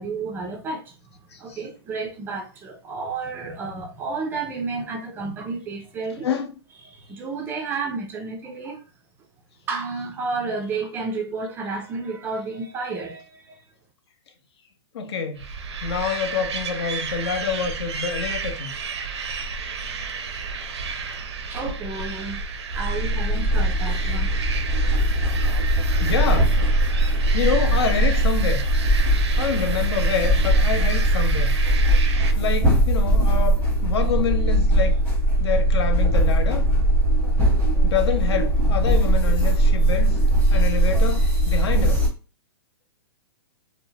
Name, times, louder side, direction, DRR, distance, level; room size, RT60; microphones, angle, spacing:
voice 1, 0.0-6.3 6.8-8.8 9.7-13.6 21.5-22.4 22.7-24.3 25.4-25.7, right 4 dB, 15° right, 0.3 m, -31 dB
voice 2, 6.2-6.5 14.9-15.5 15.8-18.7 19.7-19.8 20.0-20.1 20.7-21.1 24.0-24.1 25.5-25.7 26.0-26.5 27.3-28.6 29.4-31.6 32.0-35.0 35.4-36.6 37.8-40.2 40.5-42.0, left 6 dB, 70° left, 0.6 m, -27 dB
sound 1, 15.4-32.3, right 5 dB, 75° right, 0.5 m, -32 dB
sound 2, 22.7-42.1, right 1 dB, 10° left, 0.9 m, -20 dB
2.6 x 2.0 x 2.6 m
hypercardioid pair, 145°, 14 cm